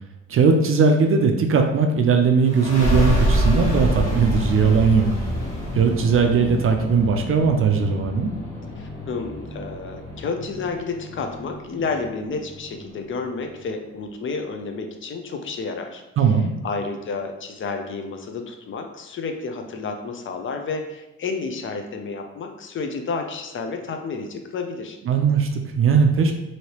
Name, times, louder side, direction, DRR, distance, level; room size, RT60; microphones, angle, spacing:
voice 1, 0.3-5.1 5.7-8.3 16.2-16.5 25.1-26.3, right 5 dB, 45° right, 4 dB, 0.4 m, -19 dB
sound 1, 2.5-13.7, equal, 65° left, 1.2 m, -27 dB
voice 2, 8.8-16.0 16.6-25.0, left 4 dB, 40° left, 5 dB, 0.5 m, -30 dB
3.0 x 2.8 x 2.9 m, 0.99 s
cardioid pair, 90°, 30 cm